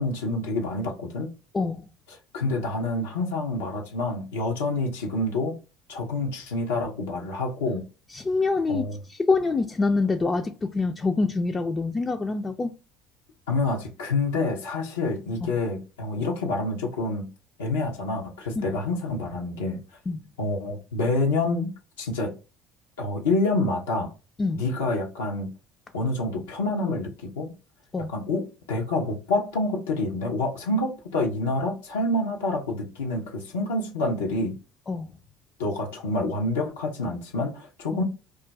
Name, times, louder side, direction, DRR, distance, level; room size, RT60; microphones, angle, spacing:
voice 1, 0.0-1.3 2.3-5.6 5.9-7.8 8.7-9.0 13.5-17.3 17.6-19.8 20.4-21.7 22.0-22.3 23.0-24.1 24.6-25.5 25.9-27.5 28.0-34.6 35.6-38.0, left 2 dB, 85° left, 0.6 m, -27 dB
voice 2, 1.5-1.9 8.1-12.8 15.4-15.6 18.6-18.7 20.1-20.2 24.4-24.6 27.9-28.1 34.9-35.1, left 3 dB, 25° left, 0.3 m, -26 dB
2.3 x 2.2 x 3.9 m
hypercardioid pair, 70°, 0 cm